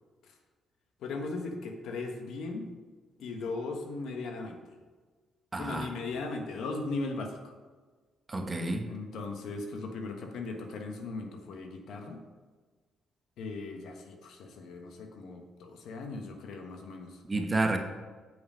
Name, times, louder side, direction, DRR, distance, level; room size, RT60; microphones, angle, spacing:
voice 1, 1.0-2.7 3.2-4.8 5.6-7.5 8.9-12.2 13.4-17.2, left 3 dB, 75° left, 4 dB, 1.2 m, -38 dB
voice 2, 5.5-5.9 8.3-8.9 17.3-17.8, right 2 dB, 25° right, 5 dB, 1.0 m, -30 dB
7.9 x 5.4 x 5.1 m, 1.4 s
cardioid pair, 100°, 0 cm